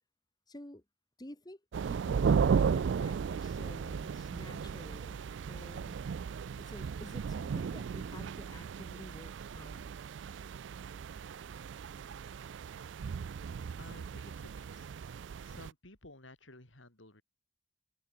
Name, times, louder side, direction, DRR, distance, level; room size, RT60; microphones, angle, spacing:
voice 1, 0.5-0.8 1.2-5.2 5.5-6.0 6.6-9.9, left 1 dB, 20° left, 2.3 m, -50 dB
sound 1, 1.7-15.7, right 6 dB, 70° right, 0.4 m, -35 dB
voice 2, 13.8-14.9 15.4-17.2, left 2 dB, 85° left, 6.5 m, -54 dB
open air
head